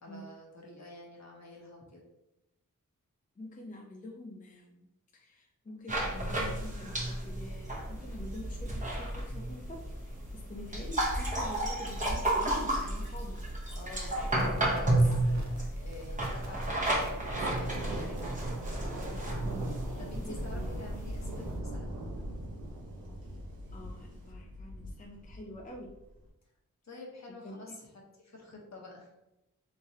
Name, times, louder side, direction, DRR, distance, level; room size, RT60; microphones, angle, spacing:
voice 1, 0.0-2.0 13.7-18.4 20.0-22.0 26.8-29.1, left 2 dB, 50° left, -2 dB, 1.0 m, -48 dB
voice 2, 3.4-4.9 5.1-13.6 19.4-20.7 23.7-26.0 27.4-27.6, left 1 dB, 25° left, -1 dB, 0.5 m, -47 dB
sound 1, 5.9-21.6, right 1 dB, 20° right, 0.9 m, -32 dB
sound 2, 13.2-13.4 13.8-14.1 14.4-14.8 15.3-15.6 15.9-17.2 17.6-17.8 18.2-19.3, right 2 dB, 50° right, 0.6 m, -47 dB
Thunder, 16.3-26.2, right 1 dB, 85° right, 1.0 m, -41 dB
3.4 x 3.2 x 2.7 m, 0.90 s
wide cardioid pair, 70°, 34 cm